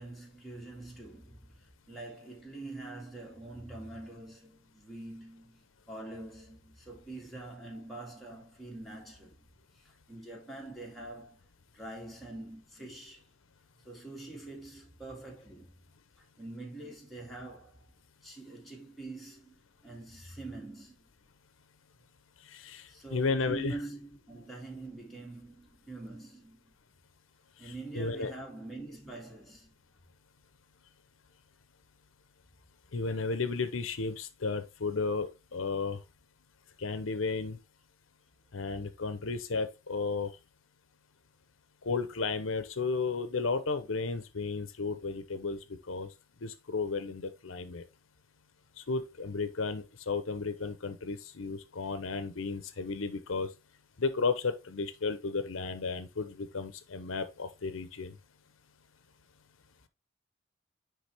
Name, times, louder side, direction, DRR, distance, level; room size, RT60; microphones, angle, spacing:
voice 1, 0.0-9.5 9.7-11.4 11.7-13.3 13.8-15.8 16.2-17.9 18.2-21.1 22.9-26.7 27.6-29.7, right 2 dB, ahead, 2.2 m, -45 dB
voice 2, 22.5-23.7 27.6-28.3 32.9-36.0 36.8-37.6 38.5-40.3 41.8-45.6 45.9-46.1 46.4-47.8 48.8-53.5 54.0-58.1, left 4 dB, 85° left, 0.8 m, -33 dB
9.9 x 3.5 x 3.4 m
head